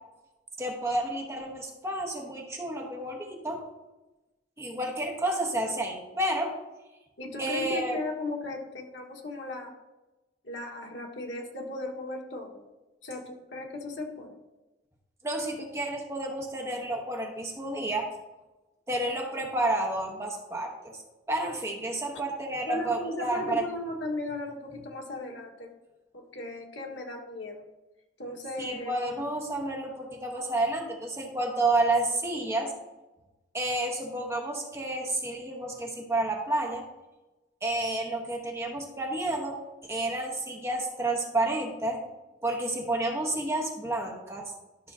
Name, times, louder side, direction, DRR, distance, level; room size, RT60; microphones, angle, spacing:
voice 1, 0.6-3.6 4.6-6.5 7.4-8.0 15.2-18.1 18.9-21.0 21.3-23.6 28.6-32.7 33.5-36.8 37.6-39.6 39.8-42.0 42.4-44.4, right 2 dB, 15° right, 1 dB, 1.0 m, -30 dB
voice 2, 7.2-9.7 10.4-12.6 13.0-14.4 22.7-25.7 26.1-27.6 28.2-28.9, left 2 dB, 75° left, 1 dB, 1.5 m, -36 dB
12.5 x 6.0 x 2.7 m, 1.1 s
head